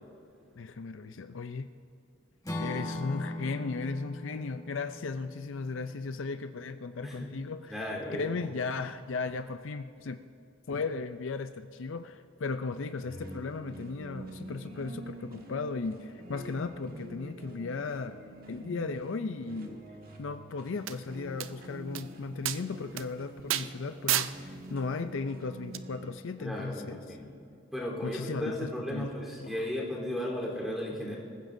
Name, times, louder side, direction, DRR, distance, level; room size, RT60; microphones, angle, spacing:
voice 1, 0.6-1.7 2.6-10.2 10.7-18.2 18.5-19.8 20.2-27.2 28.0-29.1 29.4-29.6, left 4 dB, 65° left, 9 dB, 0.5 m, -36 dB
Acoustic guitar / Strum, 2.4-6.6, left 1 dB, 15° left, 1.5 m, -40 dB
voice 2, 7.7-8.3 26.4-27.3 27.7-31.1, left 1 dB, ahead, -5 dB, 3.6 m, -35 dB
sound 1, 12.8-26.2, right 1 dB, 45° right, 1.7 m, -46 dB
sound 2, 20.9-21.0 21.4-21.5 21.9-22.0 22.4-22.6 23.0-23.1 23.5-23.7 24.1-24.3 25.7-25.8, right 12 dB, 70° right, 0.5 m, -29 dB
25.5 x 15.5 x 2.7 m, 2.7 s
head